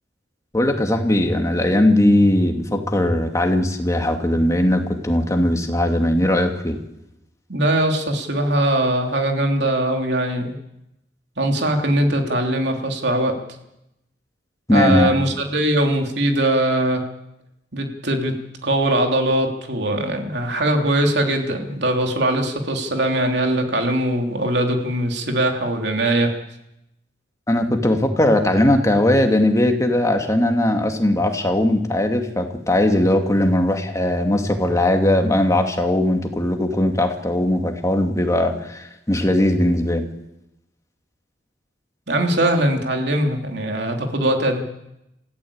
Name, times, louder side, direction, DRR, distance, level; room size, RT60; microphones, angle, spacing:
voice 1, 0.5-6.8 14.7-15.3 27.5-40.1, left 1 dB, 20° left, 4 dB, 2.3 m, -19 dB
voice 2, 7.5-10.5 11.4-13.4 14.7-17.1 17.7-26.3 42.1-44.6, right 1 dB, 70° right, 3 dB, 3.4 m, -21 dB
27.0 x 15.0 x 8.8 m, 0.88 s
head